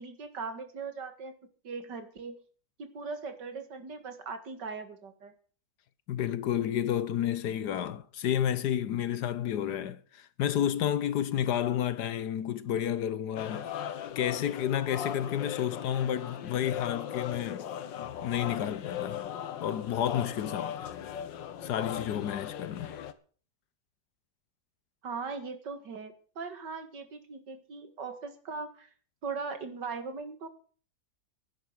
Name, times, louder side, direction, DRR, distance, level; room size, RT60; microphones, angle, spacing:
voice 1, 0.0-1.3 1.6-2.4 2.8-5.3 25.0-28.9 29.2-30.5, right 4 dB, 70° right, 2.4 m, -39 dB
voice 2, 6.1-13.9 14.2-17.7 18.2-19.3 19.6-20.9 21.6-22.9, left 10 dB, 70° left, 1.3 m, -31 dB
sound 1, 13.4-23.1, left 9 dB, 90° left, 1.7 m, -38 dB
11.0 x 9.5 x 7.9 m
omnidirectional pair, 2.0 m